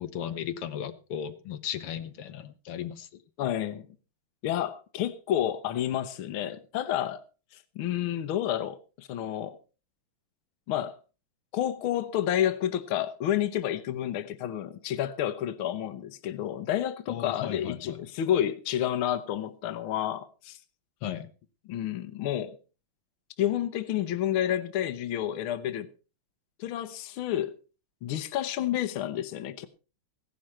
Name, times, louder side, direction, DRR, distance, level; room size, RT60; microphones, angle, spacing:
voice 1, 0.0-3.2 17.1-18.0 21.0-21.3, left 9 dB, 90° left, 2.0 m, -36 dB
voice 2, 3.4-3.9 4.4-7.2 7.8-9.6 10.7-11.0 11.5-20.6 21.7-22.6 23.4-25.9 26.6-27.5 28.0-29.7, left 11 dB, 75° left, 1.8 m, -30 dB
16.0 x 11.5 x 4.3 m
omnidirectional pair, 2.4 m